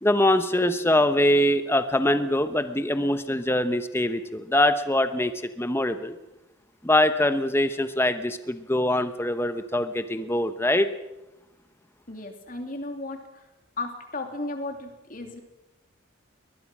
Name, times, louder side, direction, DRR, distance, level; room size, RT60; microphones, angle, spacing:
voice 1, 0.0-6.2 6.8-10.9, left 1 dB, 10° left, 10 dB, 0.9 m, -23 dB
voice 2, 12.1-13.5 13.8-15.4, left 2 dB, 40° left, 5 dB, 2.9 m, -35 dB
22.5 x 20.5 x 6.1 m, 0.97 s
head